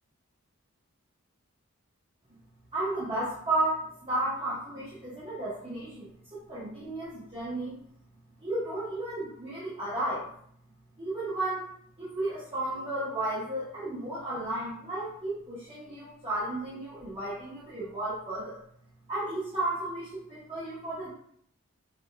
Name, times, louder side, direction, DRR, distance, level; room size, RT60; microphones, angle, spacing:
voice 1, 2.7-7.8 8.4-10.3 11.0-11.7 12.0-18.6 19.1-21.1, right 1 dB, 25° right, -12 dB, 1.0 m, -33 dB
5.0 x 2.3 x 2.3 m, 0.65 s
head